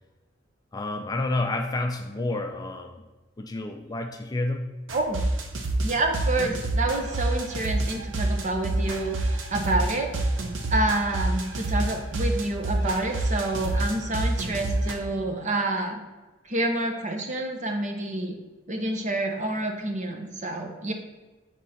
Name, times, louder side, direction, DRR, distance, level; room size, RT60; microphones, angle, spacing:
voice 1, 0.7-3.0 3.4-4.7, left 2 dB, 20° left, 4 dB, 0.4 m, -29 dB
sound 1, 4.9-14.9, right 2 dB, 90° right, 0.8 m, -27 dB
voice 2, 5.8-9.2 9.5-10.1 10.7-16.0 16.5-18.4 18.7-20.9, right 2 dB, 40° right, 3 dB, 0.8 m, -28 dB
7.6 x 3.6 x 4.2 m, 1.2 s
head